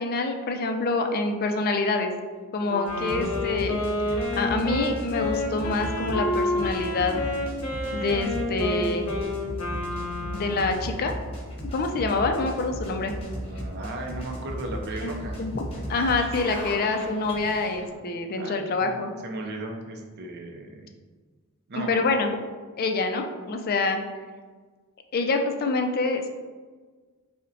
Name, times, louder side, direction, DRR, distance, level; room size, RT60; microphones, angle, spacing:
voice 1, 0.0-2.1 2.5-3.8 4.1-7.2 7.9-9.1 10.3-11.1 11.7-13.1 15.0-19.1 21.8-22.3 22.8-24.0 25.1-26.3, left 3 dB, 40° left, 5 dB, 0.3 m, -26 dB
Wind instrument woodwind instrument, 2.7-10.9, left 1 dB, 80° left, 0.7 m, -29 dB
sound 1, 2.9-18.0, equal, 25° left, 1.0 m, -36 dB
voice 2, 12.8-15.4 16.6-16.9 18.3-19.0 19.2-20.9 21.7-22.0, right 2 dB, 45° right, 1 dB, 0.5 m, -37 dB
5.3 x 2.1 x 2.6 m, 1.4 s
head